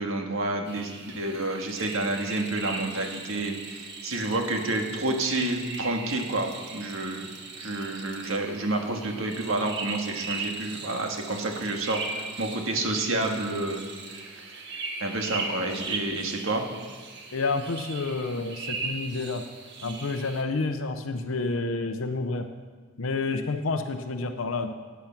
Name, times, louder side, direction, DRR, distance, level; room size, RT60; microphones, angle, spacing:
voice 1, 0.0-7.3 7.6-14.6 15.0-16.6, right 2 dB, 75° right, 3 dB, 1.7 m, -29 dB
sound 1, 0.7-20.4, right 4 dB, 55° right, 1.5 m, -38 dB
voice 2, 17.3-19.4 19.8-22.5 23.0-24.7, left 3 dB, 80° left, 7 dB, 0.7 m, -29 dB
14.5 x 8.2 x 5.9 m, 1.5 s
head